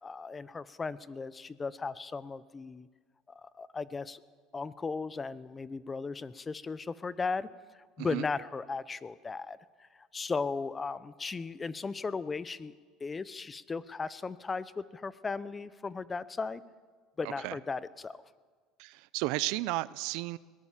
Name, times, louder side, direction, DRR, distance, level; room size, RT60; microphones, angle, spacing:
voice 1, 0.0-2.9 3.3-4.2 4.5-7.5 8.0-9.6 9.9-12.7 13.0-16.6 17.2-18.2, left 4 dB, 20° left, 17 dB, 0.8 m, -36 dB
voice 2, 18.8-20.4, right 19 dB, 75° right, 19 dB, 0.6 m, -33 dB
21.5 x 18.5 x 7.4 m, 1.5 s
supercardioid pair, 110°, 0 cm